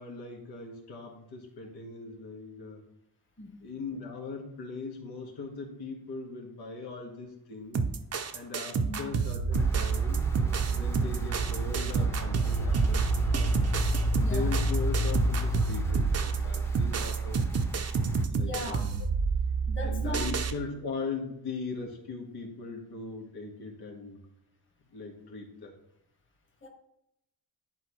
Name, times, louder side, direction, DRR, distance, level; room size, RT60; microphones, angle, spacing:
voice 1, 0.0-2.8 3.6-7.9 8.3-13.5 14.2-17.4 18.3-18.9 19.8-24.2 24.9-25.7, left 4 dB, 80° left, 0 dB, 1.8 m, -39 dB
sound 1, 7.7-20.5, right 5 dB, 40° right, 0.7 m, -29 dB
sound 2, 9.5-17.7 18.2-18.3, equal, 5° left, 0.8 m, -31 dB
voice 2, 14.2-14.6 18.4-19.0 19.7-20.3 26.6-26.7, left 2 dB, 30° left, 1 dB, 1.6 m, -38 dB
10.5 x 4.2 x 3.2 m, 0.81 s
cardioid pair, 95°, 38 cm